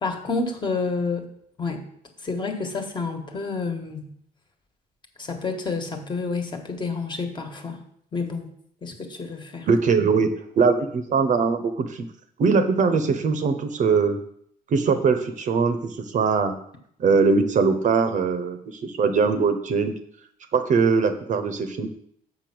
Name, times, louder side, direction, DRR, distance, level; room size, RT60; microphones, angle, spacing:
voice 1, 0.0-1.3 1.6-1.8 2.2-4.1 5.2-7.8 8.1-8.5 8.8-9.7, left 4 dB, 25° left, 4 dB, 1.5 m, -29 dB
voice 2, 9.7-10.3 10.6-12.1 12.4-14.2 14.7-15.8 16.1-16.6 17.0-19.9 20.5-21.9, right 5 dB, 45° right, 8 dB, 0.9 m, -21 dB
6.9 x 5.5 x 6.1 m, 0.67 s
cardioid pair, 110°, 17 cm